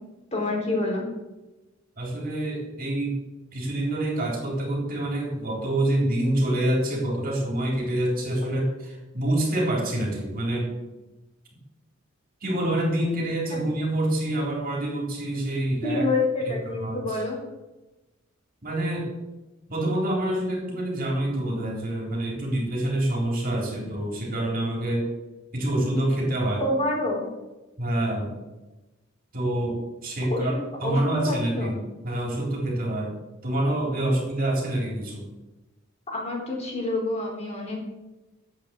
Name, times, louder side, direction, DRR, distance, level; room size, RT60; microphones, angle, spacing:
voice 1, 0.3-1.1 13.5-13.6 15.8-17.4 26.6-27.3 30.3-31.7 36.1-37.8, left 2 dB, 30° left, -2 dB, 4.2 m, -27 dB
voice 2, 2.0-3.1 3.5-10.7 12.4-16.1 16.5-17.2 18.6-19.1 19.7-25.1 25.5-26.7 27.8-28.4 29.3-30.5 30.8-31.8 32.0-33.2 33.4-35.3, right 1 dB, 45° right, -1 dB, 3.9 m, -26 dB
10.5 x 8.4 x 7.8 m, 1.1 s
head